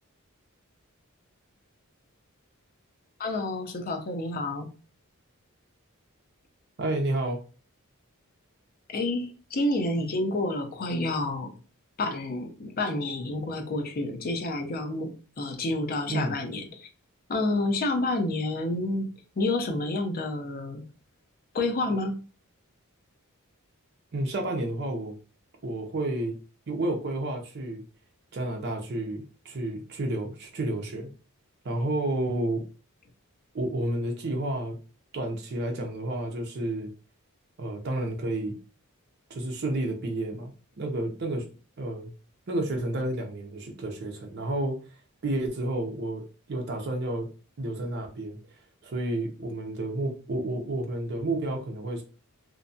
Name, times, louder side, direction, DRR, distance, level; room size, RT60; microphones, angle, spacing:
voice 1, 3.2-4.7 8.9-11.6 12.0-16.9 17.3-19.1 19.4-20.8 21.5-22.1, left 2 dB, 45° left, 5 dB, 0.5 m, -29 dB
voice 2, 6.8-7.4 16.1-16.3 24.1-25.1 25.6-26.3 26.7-27.8 28.3-31.1 31.6-32.6 33.5-34.8 35.1-36.9 37.6-38.5 39.3-41.5 41.8-42.1 42.5-44.8 45.2-46.2 46.5-47.3 47.6-48.4 48.8-52.0, right 1 dB, 50° right, 1 dB, 0.5 m, -30 dB
2.6 x 2.1 x 2.6 m, 0.35 s
head